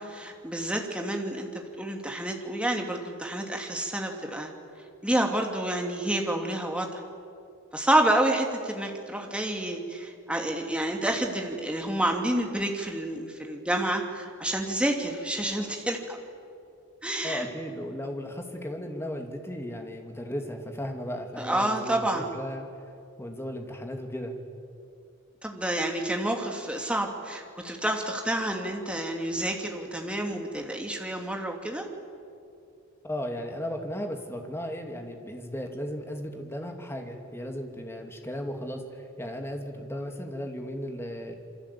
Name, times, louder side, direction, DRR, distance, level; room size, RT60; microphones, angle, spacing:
voice 1, 0.0-4.5 5.0-7.0 7.7-16.2 17.0-17.5 21.4-22.3 25.4-31.9, right 1 dB, 5° right, 2 dB, 2.8 m, -29 dB
voice 2, 17.2-22.6 23.2-24.4 33.0-41.4, equal, 10° left, 3 dB, 2.6 m, -35 dB
27.5 x 24.5 x 8.6 m, 2.5 s
head